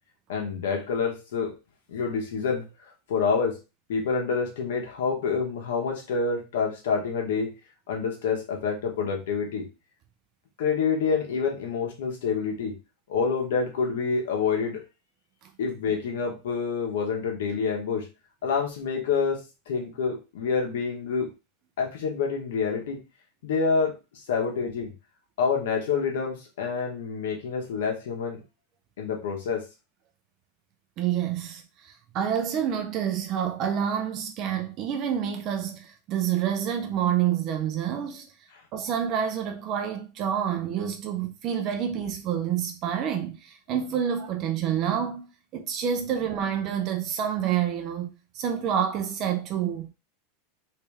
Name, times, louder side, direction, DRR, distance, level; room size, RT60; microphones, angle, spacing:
voice 1, 0.3-1.5 1.9-3.6 3.9-7.5 7.9-9.7 10.6-12.8 13.1-14.8 15.6-18.1 18.4-21.3 21.8-23.0 23.4-24.0 24.3-24.9 25.4-28.4 29.0-29.7, left 5 dB, 80° left, 1.2 m, -27 dB
voice 2, 31.0-38.3 38.7-49.9, right 9 dB, 35° right, 0.5 m, -28 dB
3.2 x 3.1 x 3.4 m
supercardioid pair, 160°, 0 cm